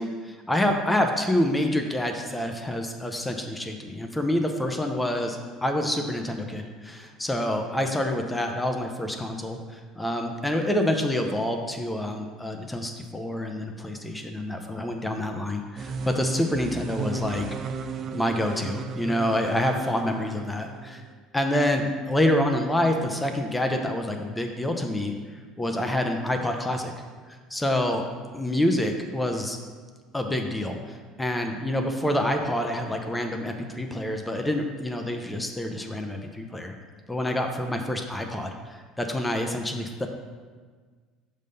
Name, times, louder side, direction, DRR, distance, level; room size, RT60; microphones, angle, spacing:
voice 1, 0.0-17.4 18.1-21.0 21.3-25.1 25.6-26.9 27.5-28.0 28.3-29.6 30.1-36.7 37.1-40.1, left 1 dB, 10° left, 4 dB, 0.7 m, -27 dB
sound 1, 15.8-21.1, right 4 dB, 50° right, 0.4 m, -35 dB
6.3 x 3.5 x 5.4 m, 1.5 s
hypercardioid pair, 70°, 0 cm